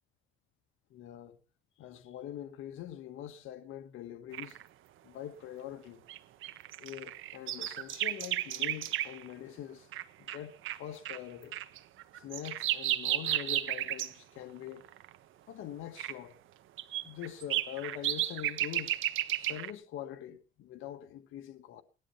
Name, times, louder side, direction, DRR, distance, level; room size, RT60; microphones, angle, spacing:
voice 1, 0.9-1.4 1.8-4.6 5.0-6.0 6.8-9.9 10.2-11.6 12.1-14.9 15.5-16.4 17.0-19.0 19.3-21.8, left 11 dB, 85° left, 1.5 m, -44 dB
sound 1, 4.3-4.6 6.1-9.3 9.9-10.0 10.3-10.4 10.6-10.8 11.0-11.2 11.5-14.1 14.8-15.1 16.0-16.1 16.8-19.7, right 13 dB, 85° right, 1.3 m, -33 dB
18.0 x 11.5 x 5.6 m
cardioid pair, 90°, 20 cm